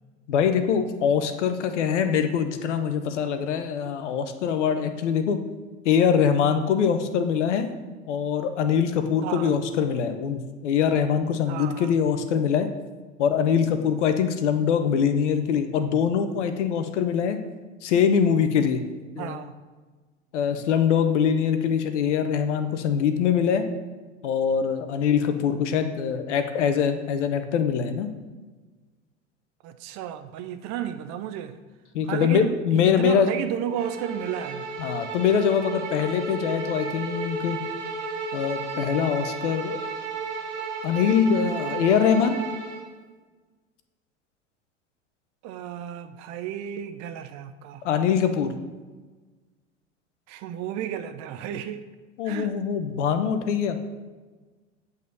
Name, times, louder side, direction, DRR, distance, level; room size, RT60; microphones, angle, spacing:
voice 1, 0.3-5.4 5.8-7.7 8.1-12.7 13.2-17.4 17.8-18.8 19.2-19.5 20.3-23.6 24.2-28.1 31.9-33.3 34.8-37.6 38.3-39.8 40.8-42.4 47.8-48.5 52.2-53.8, left 7 dB, 70° left, 1.0 m, -23 dB
voice 2, 9.2-9.6 11.5-11.9 19.2-19.5 29.6-31.6 32.1-34.7 45.4-47.8 50.3-51.9 52.2-52.5, right 10 dB, 45° right, 0.8 m, -33 dB
Bowed string instrument, 33.7-42.9, right 4 dB, 75° right, 1.5 m, -33 dB
8.4 x 4.1 x 6.8 m
hypercardioid pair, 80°, 36 cm